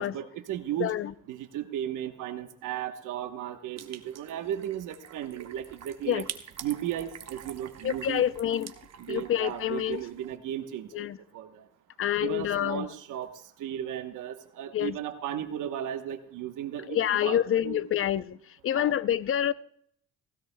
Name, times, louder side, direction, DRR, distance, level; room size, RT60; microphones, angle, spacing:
voice 1, 0.0-0.9 1.3-6.2 6.6-8.2 9.0-11.1 11.3-11.5 12.2-13.3 13.6-17.8 18.7-18.9, right 11 dB, 85° right, 1.1 m, -35 dB
voice 2, 0.8-1.1 6.1-6.2 7.8-8.7 9.1-10.0 10.9-11.2 12.0-12.9 14.7-14.9 16.9-18.4 18.6-19.5, left 11 dB, 45° left, 0.5 m, -27 dB
sound 1, 3.8-10.4, right 9 dB, 60° right, 1.0 m, -46 dB
16.5 x 16.0 x 2.2 m
cardioid pair, 90°, 30 cm